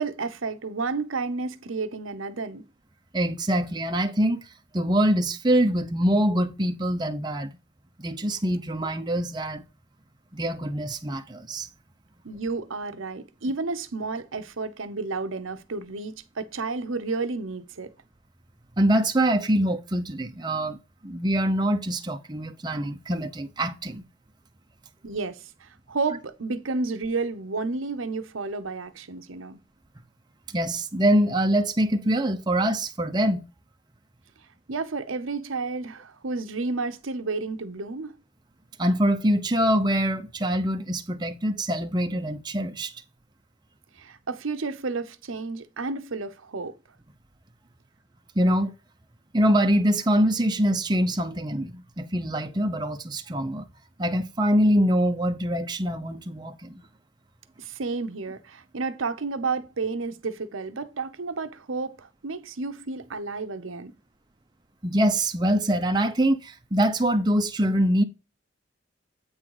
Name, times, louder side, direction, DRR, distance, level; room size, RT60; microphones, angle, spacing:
voice 1, 0.0-2.6 12.2-17.9 25.0-29.6 34.7-38.1 44.0-46.8 57.6-63.9, right 4 dB, 80° right, 0.8 m, -31 dB
voice 2, 3.1-4.4 4.7-7.5 8.0-9.6 10.3-11.7 18.8-20.8 21.0-24.0 30.5-33.4 38.8-42.9 48.4-48.7 49.3-53.7 54.0-56.8 64.8-68.0, right 1 dB, 20° right, 0.7 m, -24 dB
8.7 x 3.9 x 4.8 m
head